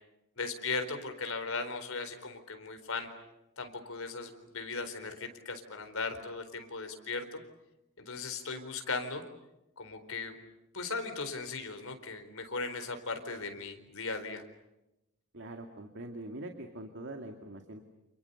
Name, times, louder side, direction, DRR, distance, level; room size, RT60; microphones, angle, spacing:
voice 1, 0.4-3.1 3.6-7.4 8.0-9.2 9.8-10.3 10.7-14.4, left 4 dB, 70° left, 7 dB, 4.2 m, -37 dB
voice 2, 15.3-17.8, right 1 dB, 55° right, 5 dB, 2.2 m, -43 dB
29.5 x 28.5 x 6.9 m, 0.93 s
head